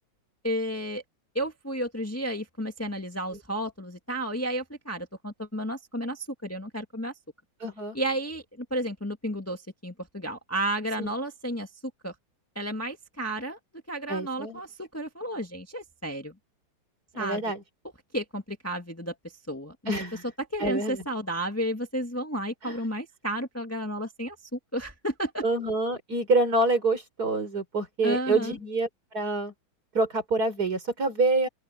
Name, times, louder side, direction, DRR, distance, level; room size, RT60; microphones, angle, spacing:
voice 1, 0.4-1.0 1.3-7.1 7.9-11.7 12.0-12.1 12.6-13.6 13.9-16.4 17.2-17.4 18.1-19.8 20.5-25.4 28.0-28.6, right 1 dB, 5° left, 1.8 m, -32 dB
voice 2, 7.6-8.0 11.0-11.1 14.1-14.6 17.1-17.6 19.9-20.2 20.6-21.0 22.6-22.8 25.4-28.9 29.1-29.5 29.9-31.5, right 2 dB, 45° right, 4.9 m, -26 dB
open air
omnidirectional pair, 2.2 m